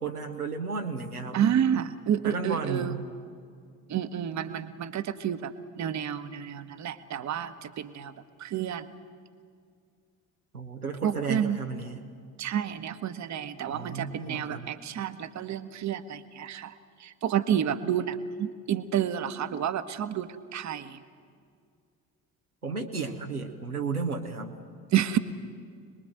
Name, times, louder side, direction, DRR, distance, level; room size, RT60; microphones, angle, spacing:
voice 1, 0.0-1.5 2.2-3.0 10.5-12.0 13.7-14.7 22.6-24.6, right 4 dB, 90° right, 1 dB, 1.2 m, -33 dB
voice 2, 1.3-2.9 3.9-8.1 8.4-8.9 11.0-11.6 12.4-16.7 17.0-21.0 24.9-25.2, right 9 dB, 40° right, 11 dB, 1.2 m, -30 dB
27.0 x 21.0 x 7.8 m, 2.2 s
figure-of-eight pair, 50°, 43 cm